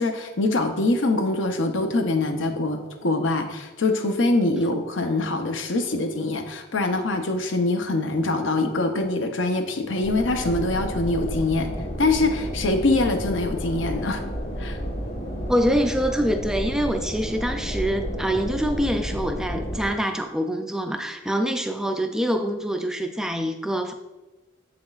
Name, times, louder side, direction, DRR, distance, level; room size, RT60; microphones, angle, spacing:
voice 1, 0.0-11.7 12.0-14.2 14.6-14.8, left 2 dB, 75° left, 6 dB, 0.7 m, -24 dB
sound 1, 10.0-19.9, equal, 50° left, 1.6 m, -31 dB
voice 2, 15.5-23.9, equal, 5° right, 6 dB, 0.3 m, -25 dB
7.6 x 6.0 x 2.4 m, 1.1 s
head